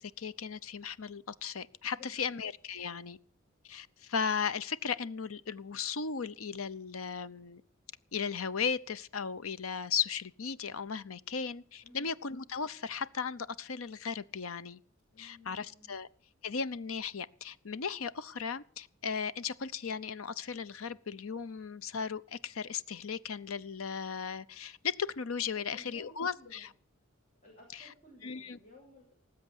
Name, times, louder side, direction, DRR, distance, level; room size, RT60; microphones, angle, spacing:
voice 1, 0.0-3.2 3.6-7.6 8.1-14.8 15.2-16.1 16.4-26.7 27.7-27.9 28.2-28.6, left 6 dB, 85° left, 0.7 m, -36 dB
voice 2, 1.9-2.3 11.8-12.2 15.1-16.0 25.5-26.7 27.4-29.2, left 1 dB, 35° left, 7.1 m, -56 dB
19.0 x 8.0 x 8.0 m
head